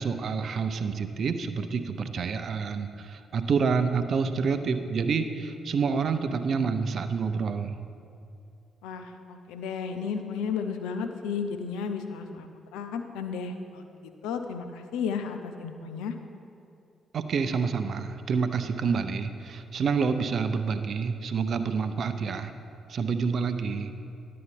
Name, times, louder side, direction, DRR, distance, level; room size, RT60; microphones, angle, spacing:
voice 1, 0.0-7.8 17.1-22.5 22.9-23.9, right 5 dB, 55° right, 9 dB, 0.5 m, -28 dB
voice 2, 8.8-13.9 14.2-16.1, left 6 dB, 75° left, 7 dB, 0.5 m, -33 dB
11.0 x 8.5 x 3.6 m, 2.6 s
hypercardioid pair, 40°, 0 cm